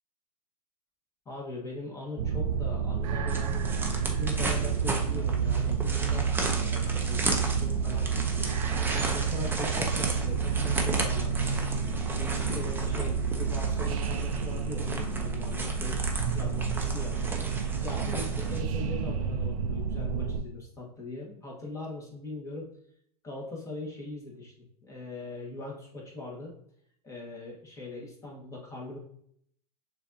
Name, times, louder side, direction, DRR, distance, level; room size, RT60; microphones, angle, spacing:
voice 1, 1.2-17.2 17.8-22.7 23.2-24.5 24.8-26.6 27.0-29.0, left 2 dB, 15° left, -3 dB, 1.3 m, -41 dB
sound 1, 2.2-20.4, right 6 dB, 60° right, 0.5 m, -29 dB
sound 2, 3.3-18.6, right 3 dB, 10° right, 0.6 m, -35 dB
6.5 x 2.7 x 2.7 m, 0.67 s
hypercardioid pair, 110°, 20 cm